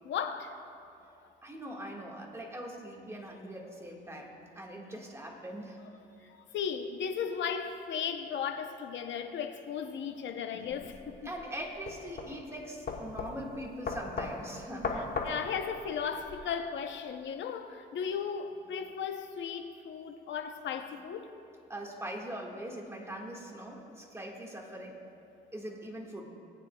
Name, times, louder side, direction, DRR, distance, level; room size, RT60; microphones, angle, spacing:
voice 1, 0.0-0.5 6.2-11.3 15.2-21.3, left 7 dB, 70° left, 0.8 m, -36 dB
voice 2, 1.4-5.8 11.2-15.2 21.7-25.0 25.5-26.2, right 1 dB, 15° right, 1.7 m, -42 dB
sound 1, 10.7-16.4, left 4 dB, 50° left, 1.1 m, -38 dB
18.5 x 9.2 x 2.3 m
cardioid pair, 90°, 20 cm